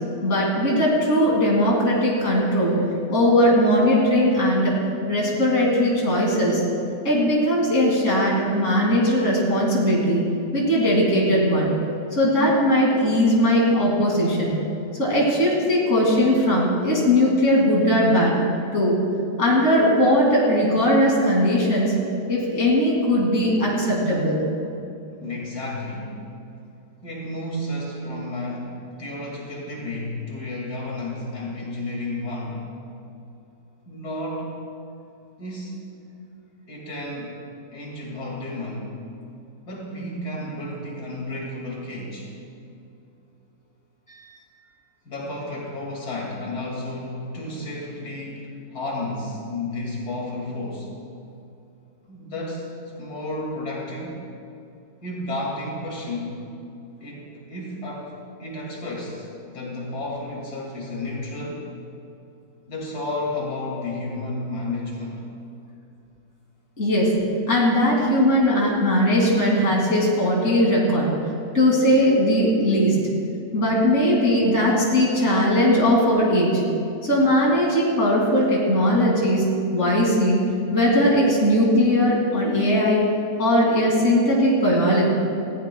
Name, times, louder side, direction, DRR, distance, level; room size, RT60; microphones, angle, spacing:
voice 1, 0.2-2.8 3.1-4.8 5.1-6.6 7.0-10.2 10.5-11.7 12.1-14.6 15.0-18.4 18.7-19.0 19.4-21.9 22.3-24.4 44.1-44.4 66.8-67.1 67.5-71.1 71.5-73.0 73.5-76.6 77.0-83.0 83.4-85.1, equal, 50° left, -3 dB, 2.8 m, -19 dB
voice 2, 25.2-26.2 27.0-32.7 33.9-34.7 35.4-35.8 36.7-37.4 37.7-39.0 39.7-42.3 45.0-50.9 52.1-54.2 55.0-56.5 57.0-58.1 58.4-61.7 62.7-65.2, left 1 dB, 85° left, -3 dB, 2.9 m, -32 dB
20.0 x 15.0 x 2.3 m, 2.7 s
omnidirectional pair, 1.6 m